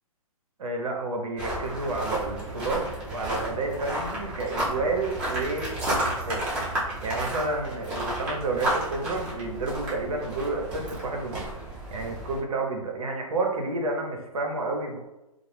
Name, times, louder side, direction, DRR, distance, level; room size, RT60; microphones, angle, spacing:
voice 1, 0.6-6.4 7.0-11.4 11.9-15.0, right 3 dB, 80° right, 2 dB, 0.7 m, -30 dB
sound 1, 1.4-12.4, right 1 dB, 20° right, 0.6 m, -32 dB
2.1 x 2.0 x 3.1 m, 0.96 s
hypercardioid pair, 160°, 18 cm